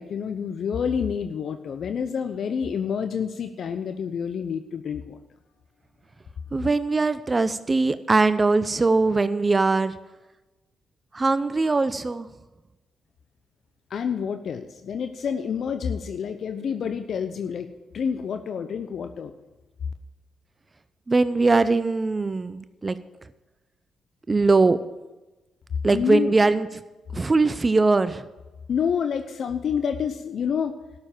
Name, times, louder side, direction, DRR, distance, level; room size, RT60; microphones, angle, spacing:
voice 1, 0.0-5.2 13.9-17.7 17.9-19.3 25.9-26.3 28.7-30.8, left 7 dB, 65° left, 8 dB, 0.7 m, -28 dB
voice 2, 6.5-9.9 11.1-12.3 21.1-23.0 24.3-24.8 25.8-26.7 27.1-28.2, right 3 dB, 30° right, 13 dB, 0.7 m, -21 dB
12.5 x 7.0 x 8.8 m, 1.1 s
supercardioid pair, 50°, 0 cm